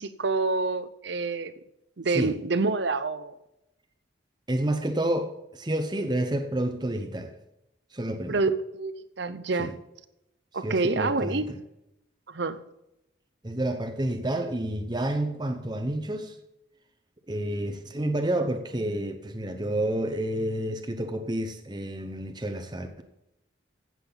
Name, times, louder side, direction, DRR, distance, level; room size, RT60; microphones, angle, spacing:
voice 1, 0.0-1.5 2.0-3.3 8.3-9.7 10.5-11.5 12.3-12.6, right 3 dB, 60° right, 13 dB, 0.7 m, -27 dB
voice 2, 4.5-7.3 7.9-8.4 9.6-9.7 10.6-11.4 13.4-16.4 17.3-23.0, right 1 dB, 20° right, 6 dB, 0.8 m, -29 dB
15.0 x 7.6 x 3.9 m, 0.87 s
head